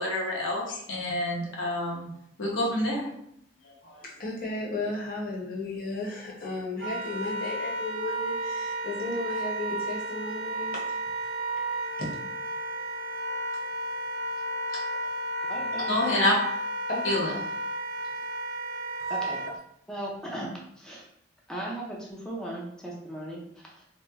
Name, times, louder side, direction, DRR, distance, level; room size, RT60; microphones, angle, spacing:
voice 1, 0.0-2.1 2.4-3.1 3.6-4.0 15.9-16.3 17.0-17.4, left 1 dB, 85° left, -3 dB, 0.9 m, -28 dB
voice 2, 4.0-11.0 12.0-12.1 14.7-14.8 15.7-16.1 16.9-17.1, left 2 dB, 50° left, -3 dB, 0.9 m, -34 dB
Wind instrument woodwind instrument, 6.8-19.5, right 1 dB, 80° right, 0.4 m, -32 dB
voice 3, 15.5-16.2 19.1-19.5 19.9-20.5 20.8-21.1 21.5-23.8, right 1 dB, 5° left, -4 dB, 0.5 m, -37 dB
3.0 x 2.1 x 3.4 m, 0.72 s
head